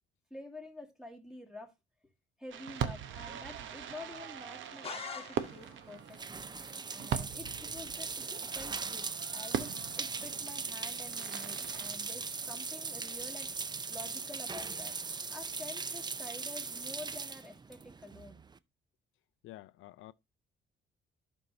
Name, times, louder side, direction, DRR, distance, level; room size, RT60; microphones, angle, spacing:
voice 1, 0.3-1.7 2.4-6.5 6.9-13.5 13.9-14.9 15.3-18.4, left 2 dB, 5° right, 2.0 m, -48 dB
Fireworks, 2.5-12.7, right 9 dB, 75° right, 0.8 m, -41 dB
sound 1, 4.8-5.9, left 5 dB, 30° left, 1.2 m, -43 dB
sound 2, 5.4-18.6, right 4 dB, 20° right, 0.4 m, -40 dB
voice 2, 19.4-20.1, left 15 dB, 85° left, 0.4 m, -50 dB
11.5 x 5.4 x 2.6 m
cardioid pair, 90°, 20 cm